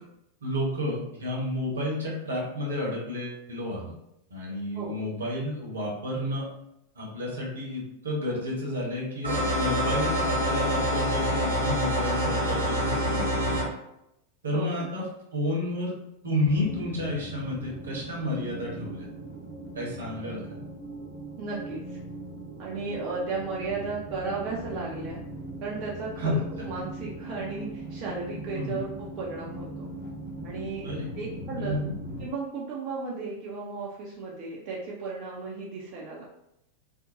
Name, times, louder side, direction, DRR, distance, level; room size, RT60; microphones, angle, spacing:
voice 1, 0.4-3.9 4.3-6.5 6.9-13.6 14.4-15.0 15.3-16.0 16.2-19.0 19.7-20.6 26.2-26.3 28.5-28.8 30.8-31.1 31.6-31.9, left 1 dB, 70° right, -3 dB, 0.9 m, -31 dB
sound 1, 9.2-13.6, equal, 90° left, 1.2 m, -26 dB
voice 2, 14.5-14.9 21.4-22.0 22.6-25.2 25.6-29.9 30.4-30.9 31.2-31.8 32.2-36.2, right 4 dB, 40° right, -4 dB, 0.5 m, -35 dB
sound 2, 16.4-32.2, right 1 dB, 30° left, 1.1 m, -39 dB
2.5 x 2.1 x 2.7 m, 0.82 s
figure-of-eight pair, 90°, 0 cm